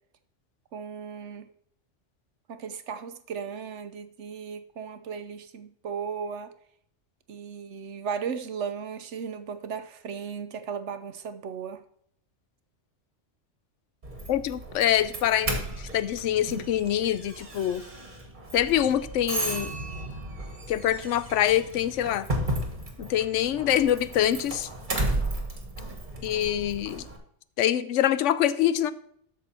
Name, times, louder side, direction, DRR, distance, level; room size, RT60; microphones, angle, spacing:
voice 1, 0.7-1.5 2.5-6.5 7.3-11.8, right 6 dB, 75° right, 10 dB, 1.2 m, -36 dB
Doorbell, 14.0-27.2, right 1 dB, 40° right, 1.8 m, -34 dB
voice 2, 14.3-17.8 18.5-19.7 20.7-22.3 23.0-24.7 26.2-27.0 27.6-28.9, left 11 dB, 85° left, 15 dB, 0.9 m, -25 dB
12.5 x 6.2 x 4.3 m, 0.68 s
omnidirectional pair, 1.2 m